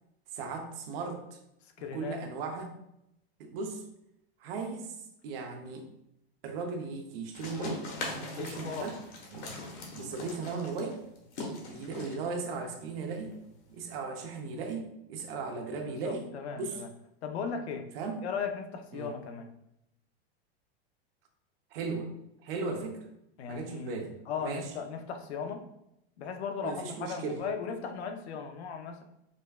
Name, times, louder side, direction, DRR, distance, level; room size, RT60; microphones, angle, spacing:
voice 1, 0.3-1.4 1.9-2.7 3.4-3.8 4.4-5.0 5.2-5.9 6.4-7.9 8.3-9.0 9.3-9.5 9.9-11.1 11.7-13.4 13.7-16.8 17.9-18.2 18.9-19.1 21.7-22.1 22.4-23.0 23.5-24.7 26.6-27.4, right 4 dB, 65° right, 4 dB, 0.7 m, -37 dB
voice 2, 1.8-2.2 8.3-8.9 16.0-16.9 17.2-17.9 18.2-19.5 23.4-25.7 26.2-29.0, left 6 dB, 90° left, 6 dB, 0.6 m, -37 dB
sound 1, 7.3-13.8, left 2 dB, 45° left, 1.0 m, -41 dB
5.0 x 2.2 x 2.3 m, 0.81 s
supercardioid pair, 140°, 32 cm